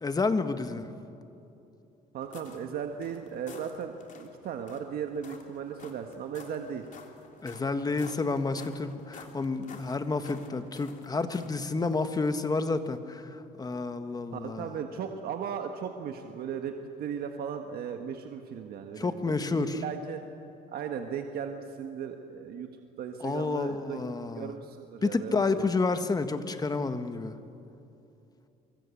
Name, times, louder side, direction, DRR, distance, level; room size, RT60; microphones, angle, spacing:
voice 1, 0.0-0.9 7.4-14.7 19.0-19.8 23.2-24.5 25.0-27.3, left 3 dB, 20° left, 9 dB, 1.6 m, -30 dB
voice 2, 2.1-6.9 14.3-20.2 20.7-22.7 23.0-24.0 24.3-25.8, right 7 dB, 65° right, 5 dB, 1.6 m, -37 dB
sound 1, 2.2-11.6, left 4 dB, 50° left, 3.5 m, -51 dB
25.5 x 24.5 x 8.5 m, 2.8 s
cardioid pair, 110°, 17 cm